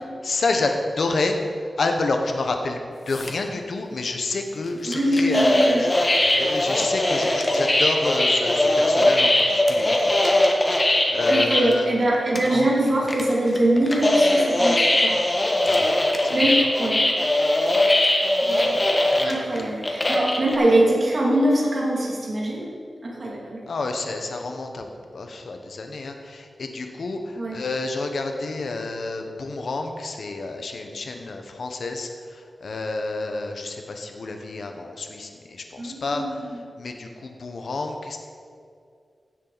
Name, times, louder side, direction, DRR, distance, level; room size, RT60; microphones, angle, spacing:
voice 1, 0.2-1.4 1.8-2.8 3.1-9.9 10.7-11.9 12.5-12.7 15.6-15.9 16.2-16.7 19.1-19.4 23.7-36.4 36.8-38.2, left 3 dB, 70° left, 4 dB, 1.1 m, -29 dB
sound 1, 3.1-3.4 4.9-11.7 12.1-12.2 12.4-12.7 13.1-20.6, left 1 dB, 25° left, 1.4 m, -20 dB
voice 2, 4.9-5.8 11.3-15.2 16.3-17.0 18.4-18.8 19.3-22.7 23.0-23.6 27.4-27.6 35.8-36.6, right 1 dB, 50° right, -4 dB, 2.5 m, -23 dB
16.0 x 7.5 x 4.1 m, 2.3 s
wide cardioid pair, 105°, 0 cm